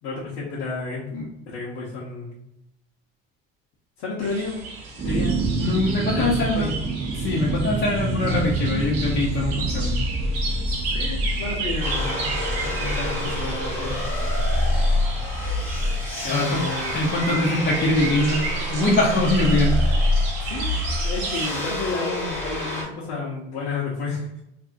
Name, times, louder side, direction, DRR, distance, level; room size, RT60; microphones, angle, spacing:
voice 1, 0.0-1.0 1.5-2.4 4.0-4.6 5.0-5.4 6.1-6.8 10.9-12.3 12.6-14.0 16.2-17.0 20.4-24.3, left 4 dB, 80° left, -6 dB, 0.9 m, -31 dB
sound 1, 4.2-21.5, right 4 dB, 65° right, 0.8 m, -34 dB
sound 2, 5.0-18.6, right 2 dB, 30° right, 0.6 m, -29 dB
voice 2, 5.6-6.7 7.2-10.0 16.3-16.6 16.9-19.8, left 2 dB, 35° left, -4 dB, 0.6 m, -23 dB
sound 3, 11.8-22.8, left 1 dB, 5° left, 1.1 m, -26 dB
2.6 x 2.5 x 2.5 m, 0.84 s
supercardioid pair, 90°, 31 cm